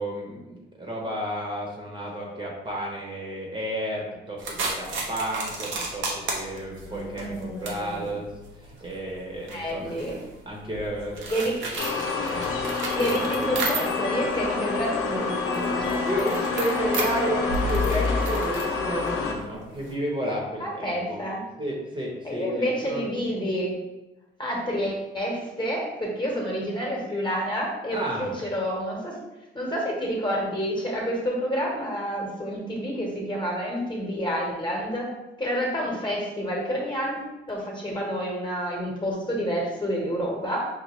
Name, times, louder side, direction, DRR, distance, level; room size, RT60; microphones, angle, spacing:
voice 1, 0.0-8.3 8.6-10.1 10.5-11.5 12.3-12.5 13.0-13.5 16.0-21.2 21.6-23.1 27.9-28.3, right 1 dB, 25° right, -2 dB, 1.0 m, -32 dB
sound 1, 4.4-14.2 14.5-19.9, right 3 dB, 75° right, 0.9 m, -34 dB
voice 2, 6.9-8.1 9.5-10.2 11.3-11.6 12.9-16.3 20.6-21.4 22.2-23.7 24.4-29.1 29.5-35.1 35.4-40.7, equal, 25° left, -2 dB, 1.2 m, -29 dB
sound 2, 11.8-19.3, left 4 dB, 85° left, 0.8 m, -27 dB
5.4 x 2.1 x 3.1 m, 1.0 s
cardioid pair, 90°, 20 cm